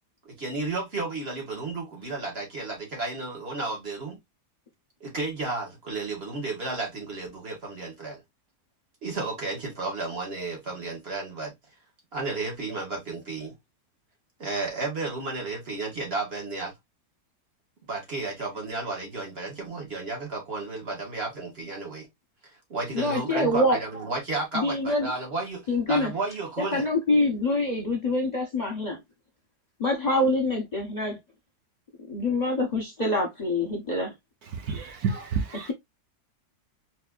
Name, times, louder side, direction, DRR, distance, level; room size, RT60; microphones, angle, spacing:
voice 1, 0.3-4.2 5.0-8.2 9.0-11.5 12.1-13.5 14.4-16.7 17.9-22.1 22.4-26.9, right 3 dB, 40° right, 1.7 m, -33 dB
voice 2, 22.9-23.8 24.5-25.1 25.7-26.1 26.6-29.0 29.8-31.2 32.1-34.1, left 2 dB, 30° left, 0.9 m, -25 dB
voice 3, 34.4-35.7, right 5 dB, 70° right, 1.3 m, -30 dB
4.1 x 2.9 x 2.4 m
omnidirectional pair, 1.7 m